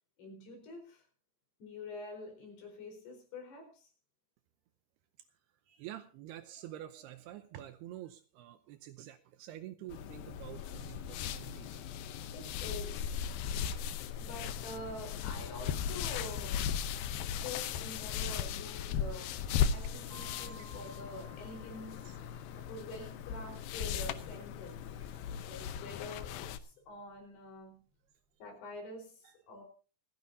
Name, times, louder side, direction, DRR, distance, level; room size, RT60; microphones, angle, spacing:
voice 1, 0.2-1.0 1.6-3.9 12.3-13.0 14.2-16.9 17.3-19.4 19.7-22.2 22.5-24.8 25.4-27.8 28.4-29.6, left 2 dB, 65° left, 3 dB, 6.2 m, -46 dB
voice 2, 5.7-11.8 12.2-12.3 22.0-22.1 25.1-25.3, right 13 dB, 75° right, 10 dB, 2.5 m, -48 dB
sound 1, 9.9-26.6, left 8 dB, 80° left, 2.3 m, -37 dB
sound 2, 20.1-27.9, left 1 dB, 35° right, 4.6 m, -59 dB
27.0 x 10.5 x 2.7 m, 0.36 s
omnidirectional pair, 5.1 m